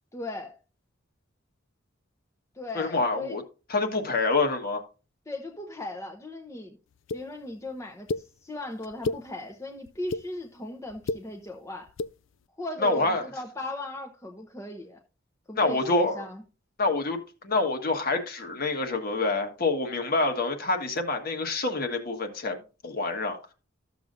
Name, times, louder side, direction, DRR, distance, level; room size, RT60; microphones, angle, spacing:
voice 1, 0.1-0.6 2.5-3.4 5.3-6.8 7.1-11.9 12.6-15.0 15.5-16.4, left 2 dB, 15° left, 0.8 m, -37 dB
voice 2, 2.7-3.4 3.7-4.8 12.8-13.2 15.6-16.2 16.8-22.6 22.8-23.5, left 3 dB, 45° left, 1.5 m, -27 dB
sound 1, 7.1-7.2 8.1-8.2 8.8-9.2 9.9-10.2 10.9-11.2 11.9-12.1, left 3 dB, 70° left, 0.4 m, -30 dB
13.5 x 7.1 x 2.6 m
head